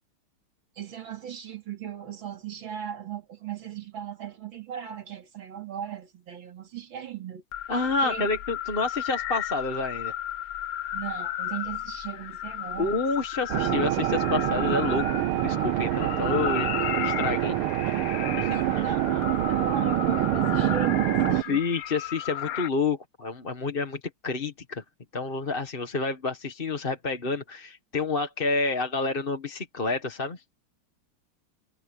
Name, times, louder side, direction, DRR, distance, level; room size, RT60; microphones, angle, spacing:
voice 1, 0.8-7.4 8.0-8.3 10.9-13.0 17.9-18.1 18.5-21.6, right 9 dB, 65° right, 3.3 m, -37 dB
sound 1, 7.5-22.7, left 12 dB, 70° left, 0.8 m, -34 dB
voice 2, 7.7-10.1 12.8-16.7 17.0-17.6 18.4-18.8 21.2-24.8 25.1-30.4, left 3 dB, 30° left, 1.5 m, -29 dB
sound 2, 13.5-21.4, right 13 dB, 85° right, 1.6 m, -26 dB
omnidirectional pair, 2.3 m